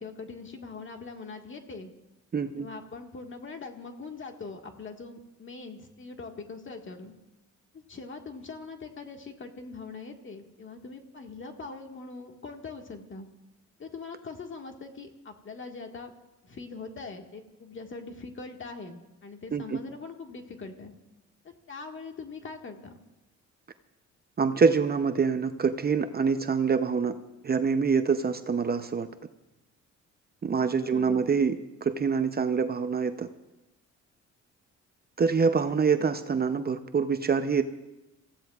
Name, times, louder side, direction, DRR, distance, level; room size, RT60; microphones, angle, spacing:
voice 1, 0.0-1.9 2.6-7.1 7.7-13.3 13.8-16.1 16.4-20.9 21.7-23.0 30.8-31.2, left 4 dB, 40° left, 3 dB, 1.7 m, -42 dB
voice 2, 2.3-2.7 19.5-19.8 24.4-27.1 27.4-29.1 30.4-33.3 35.2-37.6, right 5 dB, 30° right, 9 dB, 0.7 m, -25 dB
27.0 x 15.0 x 2.4 m, 0.98 s
cardioid pair, 90°, 30 cm